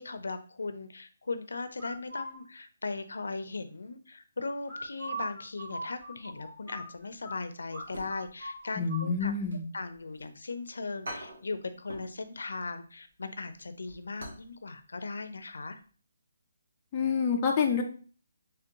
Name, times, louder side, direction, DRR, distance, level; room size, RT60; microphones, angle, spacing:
voice 1, 0.0-9.3 9.7-15.8, left 3 dB, 80° left, 11 dB, 0.5 m, -38 dB
sound 1, 1.8-2.4 4.6-7.4 7.7-7.8 8.1-9.1, right 1 dB, 25° right, 1.9 m, -39 dB
sound 2, 7.8-8.6 8.9-10.3 10.6-10.7 11.0-12.2 12.5-12.7 13.1-14.5 14.8-14.9 15.4-15.6 15.9-16.0, equal, 70° right, 1.4 m, -45 dB
voice 2, 8.8-9.6 16.9-17.8, left 5 dB, 15° left, 1 dB, 0.3 m, -27 dB
3.4 x 3.3 x 2.9 m, 0.41 s
hypercardioid pair, 175°, 0 cm